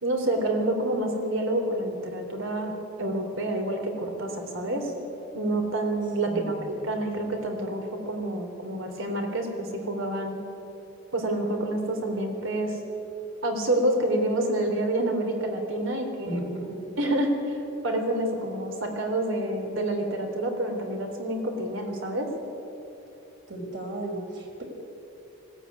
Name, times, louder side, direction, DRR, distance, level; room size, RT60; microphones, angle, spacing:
voice 1, 0.0-4.9 5.3-6.5 6.8-10.3 11.1-12.8 13.4-16.4 17.0-17.6 17.8-22.3, right 1 dB, 75° right, 3 dB, 3.6 m, -28 dB
voice 2, 6.3-6.7 16.2-16.8 23.5-24.6, right 1 dB, 55° right, 1 dB, 4.3 m, -34 dB
20.0 x 16.5 x 9.7 m, 2.9 s
head